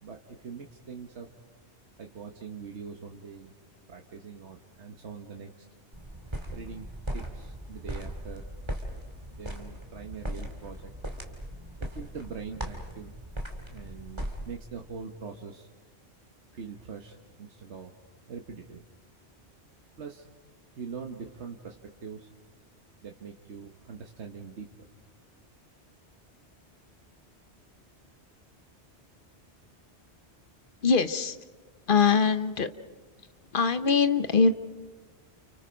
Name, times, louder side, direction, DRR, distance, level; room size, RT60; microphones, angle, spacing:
voice 1, 0.0-1.3 2.0-3.5 3.9-5.6 6.5-8.5 9.3-10.9 11.8-13.1 13.7-15.7 16.5-17.9 18.3-18.8 20.0-20.2 20.7-22.3 23.0-24.9, right 5 dB, 80° right, 2 dB, 1.6 m, -43 dB
sound 1, 5.9-14.6, equal, 25° right, 2.6 m, -38 dB
voice 2, 30.8-31.4 31.9-32.7 33.5-34.5, left 5 dB, 50° left, 11 dB, 1.1 m, -22 dB
30.0 x 29.5 x 5.2 m, 1.3 s
omnidirectional pair, 1.1 m